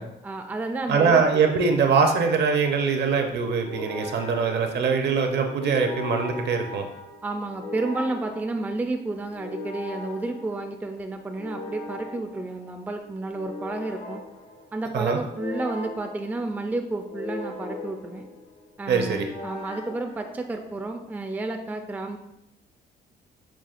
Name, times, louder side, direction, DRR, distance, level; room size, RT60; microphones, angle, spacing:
voice 1, 0.0-1.2 7.2-14.2 14.7-18.3 18.8-22.2, right 2 dB, 10° right, 5 dB, 0.3 m, -31 dB
voice 2, 0.9-6.9 14.9-15.2 18.9-19.3, right 5 dB, 60° right, 5 dB, 0.6 m, -22 dB
sound 1, 2.4-20.8, left 2 dB, 75° left, 1.0 m, -40 dB
5.9 x 2.4 x 2.4 m, 0.85 s
cardioid pair, 80°, 20 cm